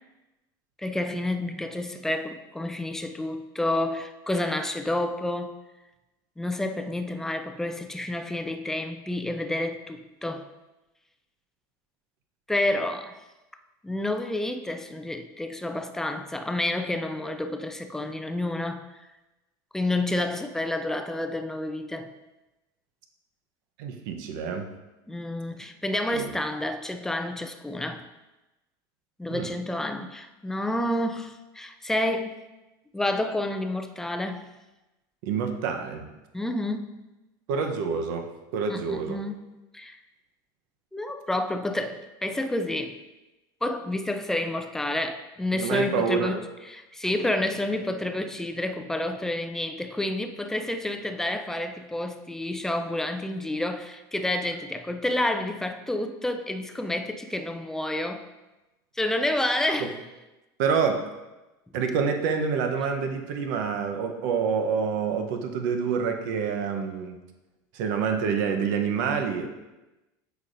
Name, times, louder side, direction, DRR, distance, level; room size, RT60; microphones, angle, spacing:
voice 1, 0.8-5.6 6.4-10.5 12.5-13.2 13.8-18.8 19.7-22.1 25.1-28.1 29.2-32.4 32.9-34.4 36.3-37.0 38.7-40.0 40.9-43.0 43.6-46.4 46.7-58.2 59.0-59.9, left 1 dB, 5° left, 0.4 m, -29 dB
voice 2, 23.8-24.7 26.1-26.3 29.3-29.5 35.2-36.1 37.5-39.2 45.5-46.4 59.8-59.9 60.6-61.1 61.7-67.2 67.7-69.5, right 6 dB, 75° right, 0.9 m, -27 dB
8.1 x 5.2 x 2.6 m
supercardioid pair, 135°, 11 cm